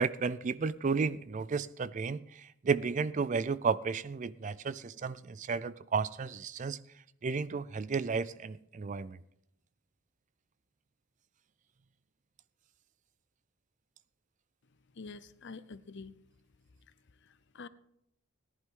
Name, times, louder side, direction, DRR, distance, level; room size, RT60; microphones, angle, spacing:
voice 1, 0.0-6.8 7.2-9.2, right 5 dB, 35° right, 17 dB, 0.4 m, -33 dB
voice 2, 14.6-16.3 16.6-17.7, left 4 dB, 55° left, 14 dB, 0.7 m, -49 dB
18.0 x 11.0 x 3.8 m, 0.77 s
head